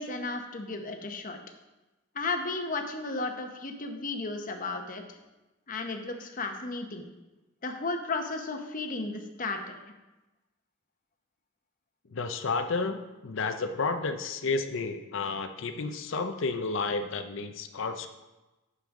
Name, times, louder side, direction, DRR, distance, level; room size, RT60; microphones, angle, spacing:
voice 1, 0.0-1.4 2.1-5.0 5.7-7.1 7.6-9.7, left 3 dB, 40° left, 5 dB, 0.9 m, -34 dB
voice 2, 12.1-18.1, left 4 dB, 65° left, 7 dB, 0.6 m, -31 dB
9.4 x 6.7 x 3.7 m, 1.1 s
head